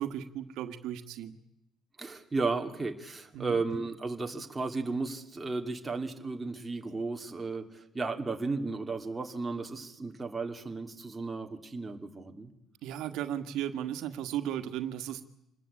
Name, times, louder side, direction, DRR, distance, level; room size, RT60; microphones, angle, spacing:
voice 1, 0.0-1.4 3.3-3.6 12.8-15.2, right 10 dB, 75° right, 9 dB, 1.8 m, -35 dB
voice 2, 2.0-12.5, right 3 dB, 15° right, 3 dB, 2.5 m, -34 dB
27.0 x 20.5 x 8.7 m, 0.83 s
cardioid pair, 150°, 0 cm